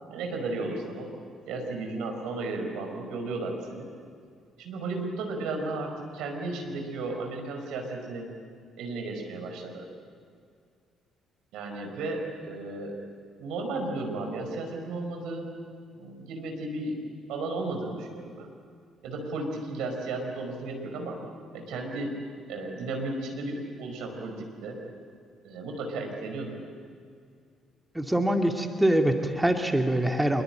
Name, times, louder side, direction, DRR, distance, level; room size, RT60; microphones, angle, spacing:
voice 1, 0.1-1.1 1.5-3.9 4.6-8.3 8.8-9.8 11.5-12.9 13.4-15.5 15.9-17.0 17.3-18.5 19.0-21.2 21.5-22.2 22.5-24.8 25.4-26.7, right 2 dB, 65° right, 3 dB, 5.1 m, -34 dB
voice 2, 27.9-30.4, right 1 dB, 10° right, 3 dB, 2.3 m, -24 dB
26.0 x 22.5 x 9.1 m, 2.2 s
hypercardioid pair, 45°, 0 cm